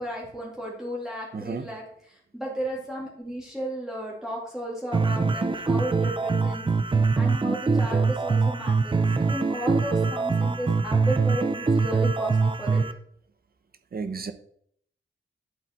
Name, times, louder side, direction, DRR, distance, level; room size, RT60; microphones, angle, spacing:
voice 1, 0.0-12.8, right 1 dB, ahead, -5 dB, 2.6 m, -34 dB
voice 2, 1.3-1.7 13.9-14.3, right 5 dB, 50° right, 10 dB, 1.1 m, -32 dB
sound 1, 4.9-12.9, right 4 dB, 25° right, 0.6 m, -23 dB
11.5 x 8.2 x 4.5 m, 0.64 s
wide cardioid pair, 175°, 20 cm